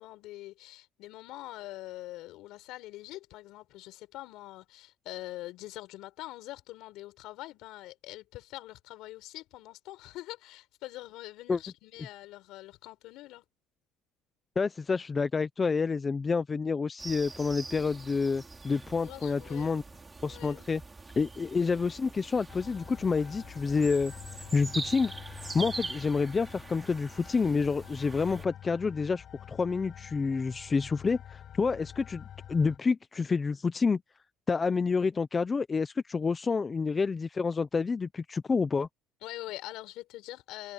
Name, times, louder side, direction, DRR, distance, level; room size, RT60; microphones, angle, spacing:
voice 1, 0.0-13.4 19.0-19.8 20.2-20.7 36.5-36.7 39.2-40.7, left 17 dB, 65° left, 5.6 m, -44 dB
voice 2, 14.6-19.8 20.2-20.8 21.2-24.1 24.5-32.2 32.5-34.0 34.5-38.9, left 4 dB, 20° left, 0.6 m, -28 dB
sound 1, 17.0-28.5, right 3 dB, 15° right, 5.8 m, -44 dB
sound 2, 22.5-32.8, left 10 dB, 40° left, 7.8 m, -47 dB
cardioid pair, 145°, 0 cm